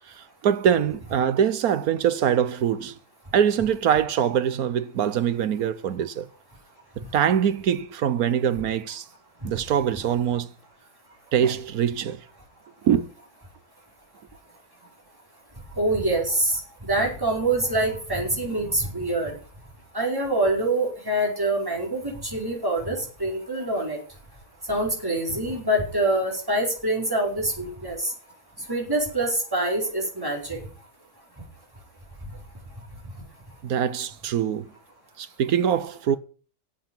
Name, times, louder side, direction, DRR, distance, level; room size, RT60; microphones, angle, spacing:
voice 1, 0.0-3.0 3.3-6.3 7.0-9.1 9.4-10.5 11.3-12.3 12.8-13.1 33.6-34.7 35.2-36.2, right 8 dB, 70° right, 1.3 m, -23 dB
voice 2, 15.8-16.6 16.9-19.3 19.9-24.0 24.7-28.1 28.7-30.6, right 1 dB, 15° right, 5.1 m, -25 dB
10.5 x 8.1 x 8.9 m
omnidirectional pair, 1.7 m